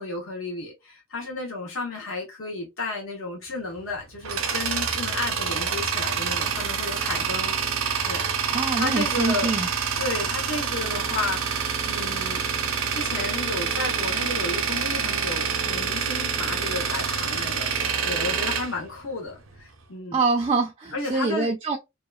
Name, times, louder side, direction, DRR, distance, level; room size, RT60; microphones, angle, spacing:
voice 1, 0.0-8.3 8.7-9.5 10.0-11.4 11.8-12.4 12.9-20.3 20.9-21.5, left 3 dB, 70° left, 1.1 m, -33 dB
Tools, 3.8-19.6, right 6 dB, 70° right, 0.6 m, -27 dB
voice 2, 8.5-9.7 20.1-21.8, right 3 dB, 25° right, 0.4 m, -25 dB
2.8 x 2.3 x 2.2 m
head